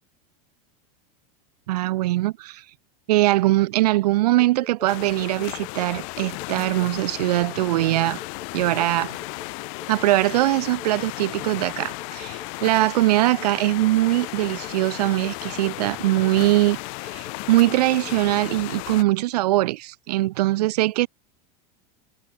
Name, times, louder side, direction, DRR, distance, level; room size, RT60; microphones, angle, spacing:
voice 1, 1.7-2.6 3.1-8.2 8.5-9.2 9.9-16.8 17.0-21.1, right 17 dB, 80° right, 1.5 m, -21 dB
sound 1, 4.4-18.6, left 6 dB, 15° left, 2.5 m, -45 dB
sound 2, 4.9-19.0, left 37 dB, 55° left, 2.2 m, -35 dB
supercardioid pair, 155°, 20 cm